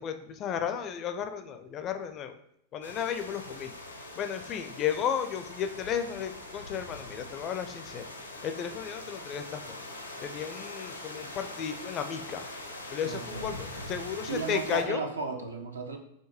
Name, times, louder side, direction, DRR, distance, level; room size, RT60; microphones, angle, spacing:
voice 1, 0.0-2.3 2.7-3.7 4.2-8.0 8.4-9.8 10.2-12.5 12.9-15.0, left 8 dB, 30° left, 8 dB, 0.4 m, -34 dB
sound 1, 2.8-14.8, left 2 dB, 85° left, 0.6 m, -43 dB
voice 2, 13.0-13.9 14.3-16.0, right 4 dB, 75° right, 5 dB, 0.5 m, -35 dB
5.7 x 2.7 x 3.0 m, 0.74 s
figure-of-eight pair, 90°, 0 cm